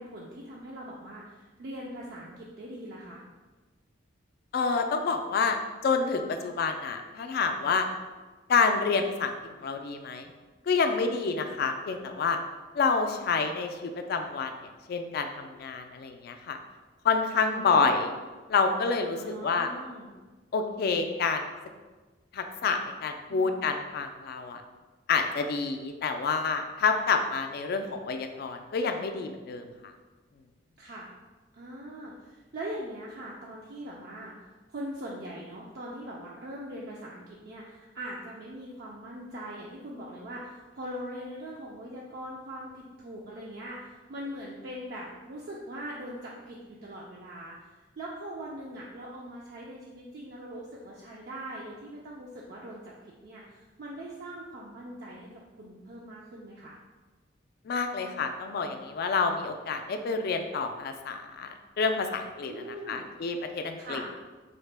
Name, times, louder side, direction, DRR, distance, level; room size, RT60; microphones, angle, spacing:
voice 1, 0.0-3.2 17.4-17.9 19.2-20.1 23.3-23.6 30.8-31.1 31.5-34.3 34.7-56.8 62.5-63.0 63.8-64.1, right 1 dB, 55° right, -4 dB, 0.4 m, -41 dB
voice 2, 4.5-5.6 5.8-7.8 8.5-9.3 9.6-10.3 10.7-12.4 12.8-14.5 14.9-16.6 17.0-18.1 18.5-19.7 20.5-21.4 22.3-24.6 25.1-29.7 57.7-64.1, left 4 dB, 55° left, 6 dB, 0.3 m, -28 dB
3.9 x 2.1 x 3.3 m, 1.3 s
head